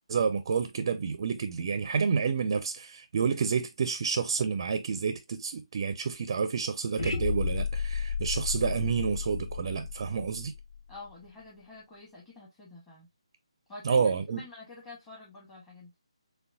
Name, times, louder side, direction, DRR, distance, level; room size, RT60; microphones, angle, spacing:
voice 1, 0.1-10.5 13.8-14.4, right 6 dB, 40° right, 0.4 m, -29 dB
sound 1, 7.0-11.1, left 5 dB, 55° left, 1.8 m, -33 dB
voice 2, 10.9-13.1 13.7-15.9, left 3 dB, 15° left, 1.2 m, -48 dB
6.5 x 2.2 x 2.5 m
figure-of-eight pair, 150°, 3 cm